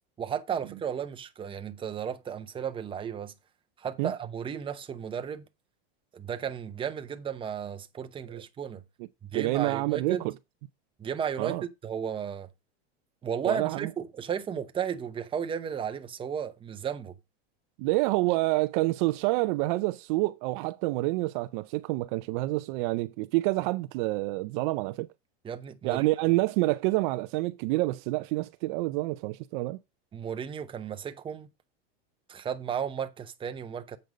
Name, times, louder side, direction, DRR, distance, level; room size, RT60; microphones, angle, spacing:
voice 1, 0.2-3.3 3.8-5.5 6.1-8.8 9.2-10.3 11.0-12.5 13.2-17.1 25.4-26.1 30.1-31.5 32.3-34.0, right 8 dB, 15° right, 0.8 m, -34 dB
voice 2, 9.3-10.3 11.4-11.6 13.5-13.9 17.8-25.1 25.8-29.8, right 21 dB, 55° right, 0.5 m, -28 dB
7.9 x 5.3 x 5.1 m
supercardioid pair, 135°, 31 cm